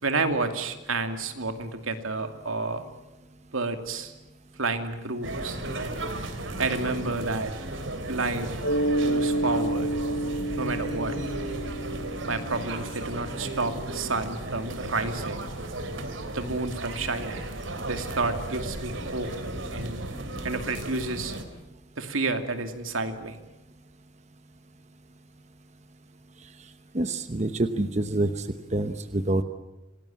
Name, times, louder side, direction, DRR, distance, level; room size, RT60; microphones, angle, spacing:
voice 1, 0.0-2.9 3.5-4.1 4.6-5.6 6.6-7.5 8.1-8.6 9.0-9.9 10.5-11.2 12.3-15.5 16.3-17.4 17.9-19.3 19.7-20.0 20.4-21.3 22.0-23.4, right 3 dB, 85° right, 7 dB, 2.6 m, -30 dB
sound 1, 5.2-21.4, right 1 dB, 70° right, 3.1 m, -35 dB
Mallet percussion, 8.6-13.1, right 1 dB, 55° left, 6.0 m, -29 dB
voice 2, 26.9-28.5 28.7-29.4, right 2 dB, 35° right, 9 dB, 1.0 m, -26 dB
27.0 x 19.0 x 8.8 m, 1.0 s
head